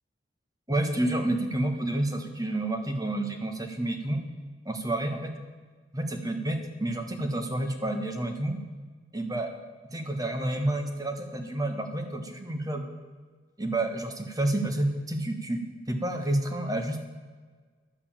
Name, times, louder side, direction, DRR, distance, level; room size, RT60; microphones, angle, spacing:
voice 1, 0.7-4.2 4.6-5.3 5.9-8.6 9.1-9.5 9.9-12.8 13.6-15.6 15.9-17.0, right 1 dB, 20° right, 5 dB, 1.4 m, -29 dB
11.0 x 8.1 x 8.7 m, 1.4 s
head